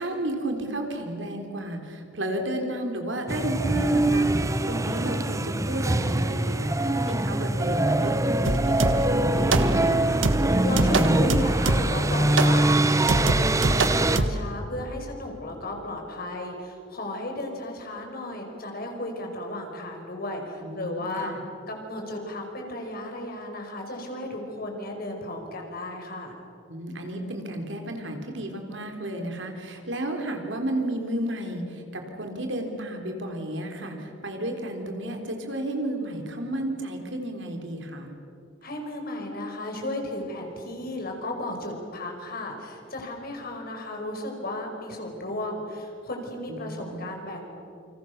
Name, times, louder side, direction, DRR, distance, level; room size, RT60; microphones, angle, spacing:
voice 1, 0.0-10.2 20.6-21.4 26.7-38.1 46.5-47.1, right 1 dB, 70° right, 4 dB, 4.0 m, -32 dB
sound 1, 3.3-14.2, right 1 dB, 15° right, 0.8 m, -23 dB
sound 2, 8.5-9.2 9.5-9.9 10.2-12.1 12.4-12.6 13.1-14.5, right 2 dB, 90° right, 1.5 m, -25 dB
voice 2, 10.6-21.3 21.7-26.3 38.6-47.6, left 1 dB, 55° left, 2 dB, 5.4 m, -34 dB
28.5 x 26.5 x 6.8 m, 2.6 s
head